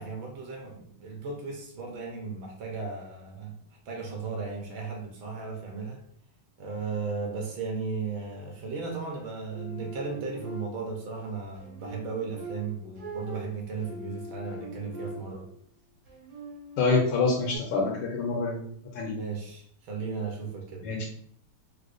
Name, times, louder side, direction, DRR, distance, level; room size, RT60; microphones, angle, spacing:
voice 1, 0.0-3.6 3.9-6.0 6.6-15.5 19.2-20.9, right 4 dB, 70° right, 0 dB, 1.4 m, -35 dB
sound 1, 9.5-11.0 11.6-15.6 16.1-17.6, right 1 dB, 90° right, 2.5 m, -42 dB
voice 2, 16.8-18.6 18.9-19.2 20.8-21.0, left 4 dB, 80° left, -1 dB, 1.5 m, -26 dB
4.9 x 2.1 x 2.4 m, 0.64 s
omnidirectional pair, 2.4 m